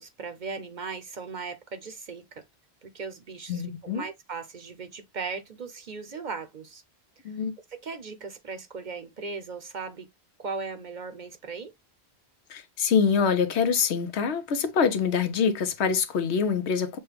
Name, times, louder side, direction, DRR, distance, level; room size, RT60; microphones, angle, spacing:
voice 1, 0.0-2.4 2.8-6.8 7.7-10.1 10.4-11.7, right 4 dB, 50° right, 0.8 m, -38 dB
voice 2, 3.5-4.0 7.2-7.5 12.5-17.0, left 6 dB, 80° left, 1.0 m, -25 dB
6.7 x 2.2 x 3.3 m
omnidirectional pair, 1.1 m